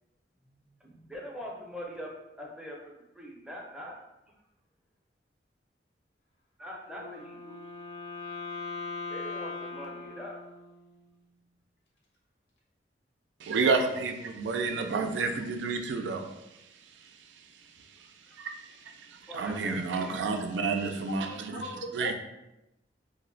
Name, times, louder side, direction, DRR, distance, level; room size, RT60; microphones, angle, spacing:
voice 1, 0.7-2.1 2.4-4.0 6.6-7.6 9.1-10.4 18.0-18.4 19.3-20.3, equal, 5° right, -2 dB, 0.5 m, -43 dB
Wind instrument woodwind instrument, 6.8-11.1, left 4 dB, 85° left, 0.8 m, -40 dB
voice 2, 13.4-16.3 18.4-21.6 21.9-22.1, right 4 dB, 85° right, 5 dB, 0.4 m, -30 dB
voice 3, 21.1-22.1, left 1 dB, 60° left, 4 dB, 0.4 m, -39 dB
2.6 x 2.0 x 3.8 m, 0.92 s
head